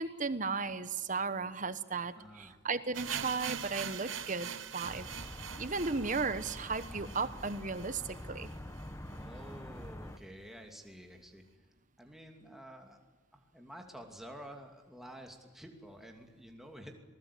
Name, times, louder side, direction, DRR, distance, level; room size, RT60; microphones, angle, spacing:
voice 1, 0.0-5.1 5.6-8.5, right 4 dB, 40° right, 13 dB, 1.2 m, -35 dB
voice 2, 2.1-2.6 9.1-11.4 12.0-13.0 13.3-17.0, equal, ahead, 2 dB, 2.7 m, -50 dB
sound 1, 2.9-8.9 9.1-9.2 9.5-9.6 10.1-10.2, right 8 dB, 75° right, 1.2 m, -43 dB
sound 2, 4.8-10.2, left 1 dB, 15° left, 1.2 m, -46 dB
26.5 x 20.0 x 8.5 m, 1.3 s
head